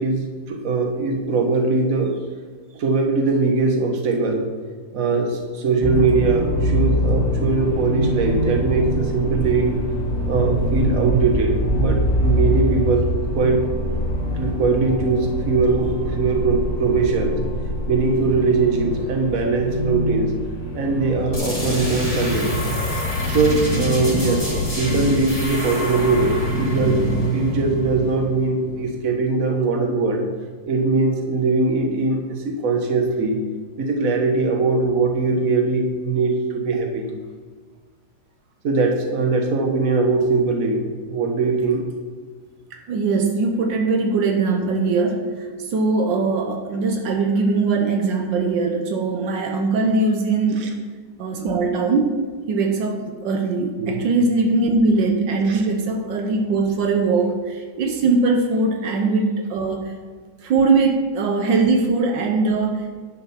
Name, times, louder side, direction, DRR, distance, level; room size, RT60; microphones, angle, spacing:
voice 1, 0.0-2.1 2.7-4.5 4.9-9.8 10.2-13.1 13.3-13.6 14.3-17.4 17.9-20.4 20.7-30.2 30.7-33.4 33.8-37.1 38.6-41.8 50.6-50.7 53.8-54.0 55.5-55.6, right 3 dB, 50° right, 2 dB, 1.7 m, -21 dB
sound 1, 5.8-21.4, equal, 40° left, 2.4 m, -24 dB
sound 2, 21.3-28.9, left 1 dB, 25° left, 3.3 m, -25 dB
voice 2, 42.7-50.7 51.2-52.2 52.5-59.9 60.4-63.0, right 3 dB, 80° right, 3 dB, 1.6 m, -21 dB
11.0 x 6.7 x 5.8 m, 1.5 s
omnidirectional pair, 2.0 m